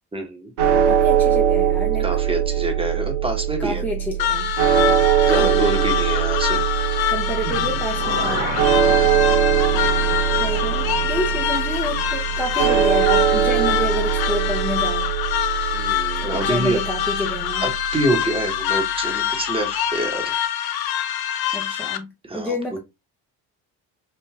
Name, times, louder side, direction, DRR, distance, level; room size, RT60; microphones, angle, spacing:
voice 1, 0.1-0.5 2.0-3.8 5.2-6.6 8.8-9.4 15.7-16.8 17.1-17.3 17.6-20.3 22.2-22.5, right 1 dB, 10° right, 0.9 m, -26 dB
sound 1, 0.6-18.8, right 9 dB, 60° right, 0.7 m, -21 dB
voice 2, 0.8-2.1 3.6-4.5 5.2-5.6 7.1-8.7 10.4-15.1 16.2-17.6 21.5-22.8, left 1 dB, 5° left, 0.5 m, -29 dB
sound 2, 4.2-22.0, left 11 dB, 55° left, 0.5 m, -25 dB
sound 3, 7.4-13.4 13.7-13.8, right 3 dB, 90° right, 1.1 m, -34 dB
3.4 x 2.1 x 2.2 m
hypercardioid pair, 60°, 46 cm